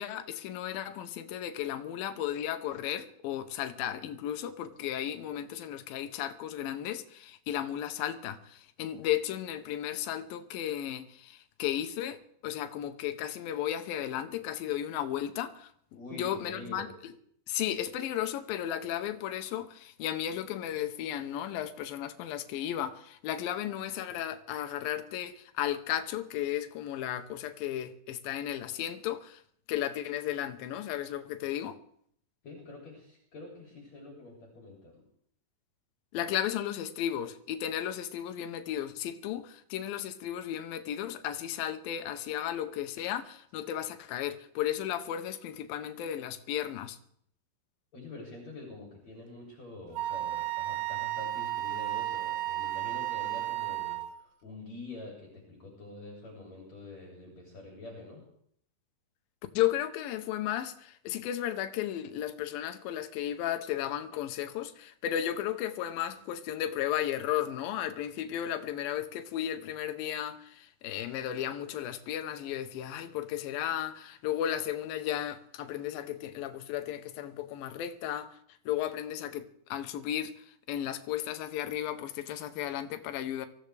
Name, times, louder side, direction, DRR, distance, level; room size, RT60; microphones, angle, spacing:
voice 1, 0.0-15.7 16.1-16.9 17.5-29.4 29.7-31.8 36.1-47.0 59.5-78.4 78.7-83.5, left 11 dB, 75° left, 2.6 m, -34 dB
voice 2, 15.9-16.9 32.4-35.0 47.9-58.2, left 2 dB, 45° left, 4.2 m, -46 dB
Wind instrument woodwind instrument, 50.0-54.2, right 15 dB, 90° right, 3.0 m, -33 dB
23.5 x 15.5 x 3.4 m
omnidirectional pair, 4.5 m